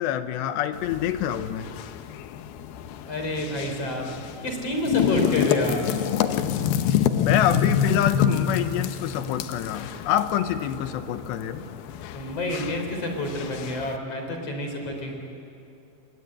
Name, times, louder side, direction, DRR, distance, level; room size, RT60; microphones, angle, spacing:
voice 1, 0.0-1.7 7.2-11.6, left 10 dB, 90° left, 10 dB, 3.2 m, -26 dB
sound 1, 0.7-14.0, left 9 dB, 70° left, 2.6 m, -28 dB
voice 2, 3.0-6.0 12.1-15.1, left 1 dB, 35° left, 3 dB, 4.8 m, -29 dB
27.5 x 21.0 x 9.9 m, 2.7 s
omnidirectional pair, 5.0 m